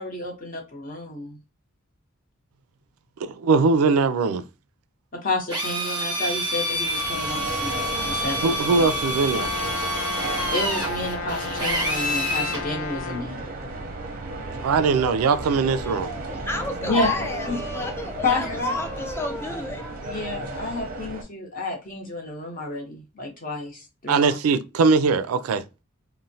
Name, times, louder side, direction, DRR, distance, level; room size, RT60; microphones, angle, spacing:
voice 1, 0.0-1.4 5.1-8.6 10.5-13.5 16.8-17.1 17.5-17.6 18.2-18.8 20.1-24.4, left 2 dB, 40° left, 0.8 m, -30 dB
voice 2, 3.2-4.4 8.4-9.5 14.6-16.1 24.1-25.6, right 4 dB, 85° right, 0.3 m, -21 dB
Drill, 5.5-12.6, equal, 20° right, 0.9 m, -28 dB
sound 1, 6.7-21.2, right 2 dB, 40° right, 0.6 m, -34 dB
Brass instrument, 9.3-13.3, left 6 dB, 65° left, 0.5 m, -34 dB
voice 3, 15.8-20.2, left 1 dB, 10° left, 0.4 m, -31 dB
3.0 x 2.1 x 2.6 m
head